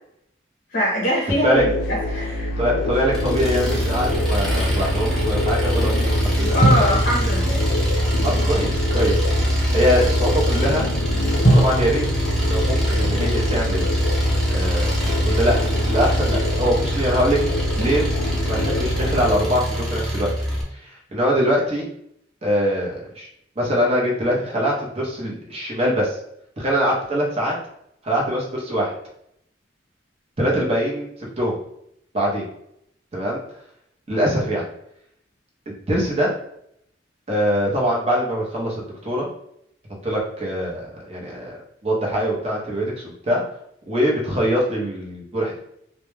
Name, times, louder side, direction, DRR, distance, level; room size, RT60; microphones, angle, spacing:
voice 1, 0.7-2.5 6.5-7.6, equal, 50° left, -4 dB, 0.6 m, -22 dB
sound 1, 1.5-19.4, left 1 dB, 90° left, 0.3 m, -26 dB
voice 2, 2.6-6.6 8.2-9.2 9.7-10.9 11.5-12.0 12.5-13.9 14.5-15.5 15.9-18.1 18.5-20.3 20.8-21.9 22.4-23.3 23.6-26.2 26.6-27.5 28.0-28.9 30.4-31.6 32.1-32.4 33.1-33.4 34.1-34.7 35.7-36.3 37.3-39.3 40.0-41.6 41.8-42.8 43.2-43.4 43.9-45.6, equal, 35° right, -3 dB, 0.7 m, -23 dB
Engine, 3.1-20.6, equal, ahead, 0.5 m, -23 dB
sound 2, 6.6-9.0 11.4-14.5, right 1 dB, 35° left, 1.0 m, -24 dB
2.2 x 2.0 x 3.1 m, 0.74 s
head